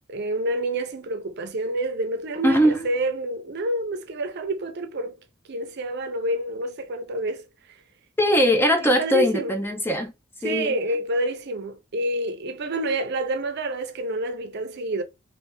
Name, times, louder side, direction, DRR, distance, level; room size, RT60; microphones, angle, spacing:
voice 1, 0.1-5.2 5.5-7.5 8.8-9.6 10.4-15.0, right 1 dB, 55° right, 0.6 m, -28 dB
voice 2, 2.4-2.9 8.2-10.1 10.4-10.7, equal, 10° left, 0.5 m, -20 dB
3.3 x 2.6 x 2.9 m
head